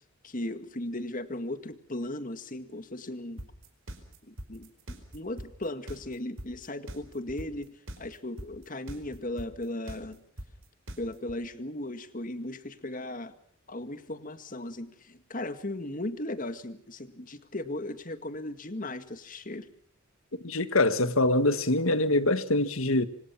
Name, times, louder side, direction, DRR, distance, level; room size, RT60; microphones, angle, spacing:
voice 1, 0.2-3.5 4.3-10.2 11.0-13.3 13.7-19.7, left 1 dB, 40° left, 2.0 m, -37 dB
sound 1, 3.4-11.3, equal, 70° right, 4.8 m, -41 dB
voice 2, 20.4-23.1, left 2 dB, 80° left, 1.7 m, -24 dB
26.5 x 26.0 x 6.0 m
head